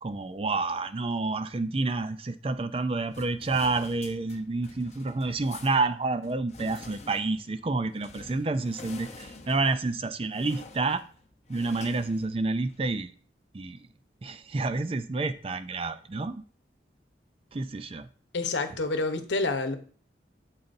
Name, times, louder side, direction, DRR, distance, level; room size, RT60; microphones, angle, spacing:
voice 1, 0.0-11.0 11.5-13.1 13.5-13.8 14.2-16.4 17.5-18.1, right 3 dB, 30° right, 0.4 m, -29 dB
sound 1, 3.1-12.9, left 3 dB, 35° left, 0.7 m, -48 dB
voice 2, 18.3-19.7, left 3 dB, 85° left, 0.9 m, -28 dB
12.0 x 4.0 x 2.6 m
head